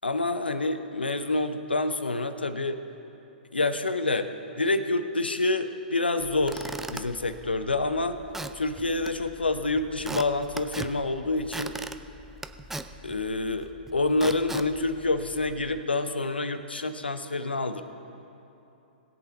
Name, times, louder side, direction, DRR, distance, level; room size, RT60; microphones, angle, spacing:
voice 1, 0.0-2.8 3.5-8.2 8.5-11.8 13.0-17.8, left 2 dB, 85° left, 9 dB, 0.8 m, -27 dB
Squeak / Wood, 6.2-15.8, right 2 dB, 5° right, 0.4 m, -41 dB
21.0 x 8.0 x 4.2 m, 2.9 s
figure-of-eight pair, 115°, 5 cm